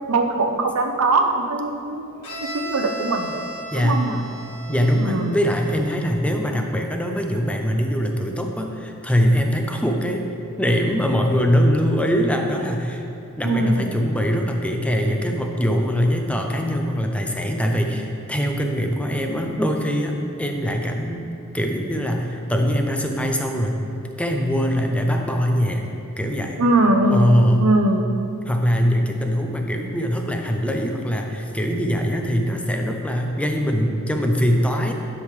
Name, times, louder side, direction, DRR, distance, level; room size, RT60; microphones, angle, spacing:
voice 1, 0.1-2.1 2.5-3.5 3.7-4.2 4.9-5.4 13.4-13.9 26.6-28.1, right 2 dB, 90° right, 4 dB, 0.7 m, -21 dB
Bowed string instrument, 2.2-6.0, right 2 dB, 75° left, 1.6 m, -36 dB
voice 2, 3.7-4.1 4.7-10.3 10.6-13.0 13.4-21.3 21.5-23.8 24.2-25.8 26.2-26.6 27.1-27.6 28.5-34.9, equal, 5° left, 3 dB, 0.5 m, -22 dB
11.0 x 5.2 x 3.3 m, 2.6 s
head